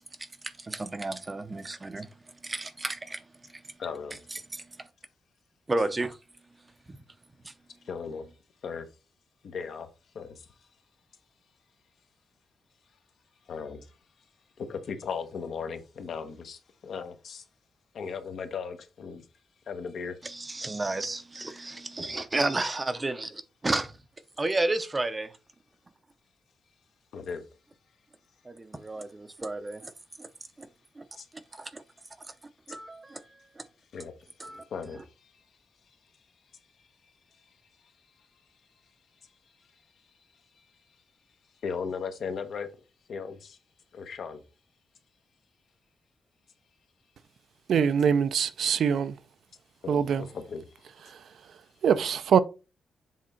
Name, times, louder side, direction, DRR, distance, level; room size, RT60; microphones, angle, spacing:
voice 1, 0.6-2.1 2.4-3.2 4.5-4.6 5.7-6.2 7.4-7.5 20.2-23.9 24.4-25.3 28.5-29.9 30.2-30.3 30.6-30.7 31.0-31.1 31.6-31.8 32.7-33.2 33.6-33.7 34.4-34.6, right 2 dB, 20° right, 0.6 m, -32 dB
voice 2, 3.8-4.2 7.8-8.3 8.6-8.9 9.4-9.9 10.1-10.5 13.5-14.0 14.6-17.4 17.9-19.2 19.7-20.2 27.1-27.4 31.2-31.3 32.7-32.8 33.9-35.4 41.6-42.7 43.1-43.6 43.9-44.4 49.8-50.7, left 6 dB, 60° left, 1.0 m, -37 dB
voice 3, 47.7-49.1 49.9-50.3 51.1-51.2 51.8-52.4, right 7 dB, 65° right, 0.4 m, -23 dB
7.5 x 3.6 x 4.4 m
wide cardioid pair, 160°, 0 cm